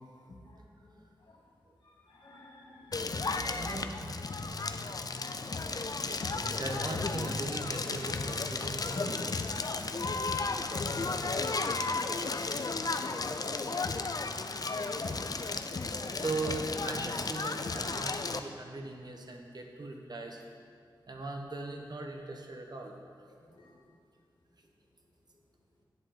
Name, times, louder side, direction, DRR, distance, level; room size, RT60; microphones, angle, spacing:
voice 1, 2.1-3.6 5.3-5.4 8.9-9.2 9.9-10.0 10.9-11.2 15.0-15.1 16.1-16.2 23.3-23.7, left 2 dB, 75° left, -5 dB, 2.2 m, -46 dB
Crackle, 2.9-18.4, left 3 dB, 45° left, 0.5 m, -34 dB
voice 2, 3.4-4.5 5.5-5.7 6.5-9.2 16.1-20.4 21.1-22.9, right 2 dB, 50° right, 2 dB, 1.3 m, -39 dB
11.0 x 8.0 x 3.9 m, 2.2 s
cardioid pair, 45°, 9 cm